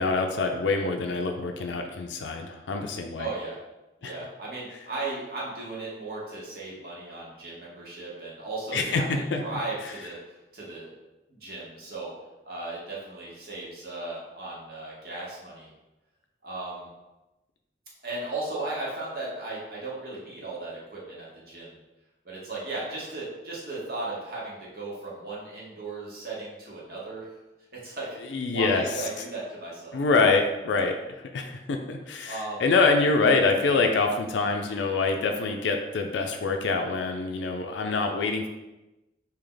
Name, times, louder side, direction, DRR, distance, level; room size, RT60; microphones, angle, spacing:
voice 1, 0.0-3.3 4.0-4.1 8.7-9.0 9.3-9.4 28.3-28.8 29.9-38.5, left 4 dB, 90° left, 4 dB, 0.4 m, -25 dB
voice 2, 3.2-3.6 4.0-9.0 9.4-11.0 11.3-12.1 12.4-15.7 16.4-16.9 18.0-21.8 22.2-27.4 27.7-30.0 32.2-32.6, right 2 dB, 55° right, -5 dB, 1.2 m, -36 dB
3.3 x 2.8 x 3.8 m, 1.0 s
head